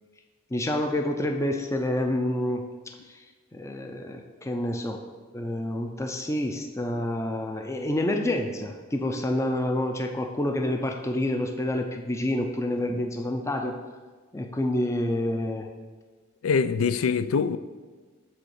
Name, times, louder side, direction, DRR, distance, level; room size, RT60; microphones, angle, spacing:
voice 1, 0.5-2.7 3.1-3.2 3.5-5.0 5.3-13.8 14.3-15.7, left 1 dB, 15° left, 0.5 m, -28 dB
voice 2, 16.4-17.6, left 5 dB, 90° left, 0.4 m, -24 dB
7.7 x 3.9 x 6.6 m
head